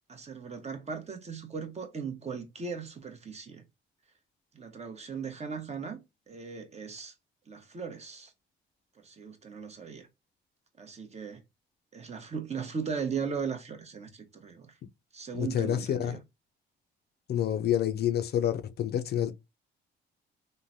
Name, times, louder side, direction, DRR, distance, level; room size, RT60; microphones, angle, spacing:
voice 1, 0.1-3.6 4.5-6.0 6.3-7.1 7.5-8.3 9.0-10.1 10.8-11.4 11.9-14.7 15.1-16.2, right 6 dB, 35° right, 0.8 m, -38 dB
voice 2, 15.3-16.2 17.3-19.3, left 10 dB, 55° left, 0.4 m, -28 dB
3.1 x 2.1 x 2.5 m
cardioid pair, 90°, 20 cm